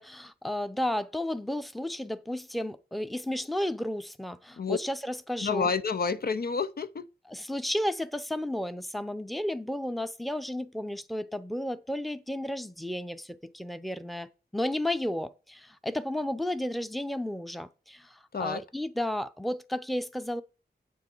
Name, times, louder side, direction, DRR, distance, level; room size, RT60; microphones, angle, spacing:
voice 1, 0.0-5.7 7.3-20.4, left 1 dB, ahead, 0.6 m, -33 dB
voice 2, 5.4-7.0 18.3-18.6, left 5 dB, 60° left, 0.5 m, -29 dB
9.3 x 7.7 x 4.5 m
wide cardioid pair, 90°, 17 cm